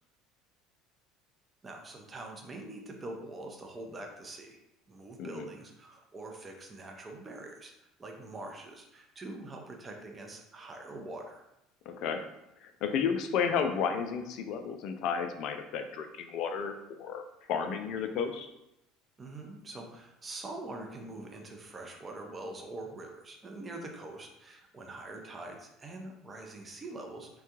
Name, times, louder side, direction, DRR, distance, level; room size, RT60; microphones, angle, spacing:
voice 1, 1.6-4.6 4.9-7.7 8.0-11.4 19.2-27.3, right 2 dB, 25° right, 2 dB, 0.6 m, -44 dB
voice 2, 11.9-12.2 12.6-17.2 17.5-18.5, left 6 dB, 55° left, 6 dB, 0.3 m, -32 dB
3.5 x 2.2 x 2.8 m, 0.87 s
figure-of-eight pair, 65°, 0 cm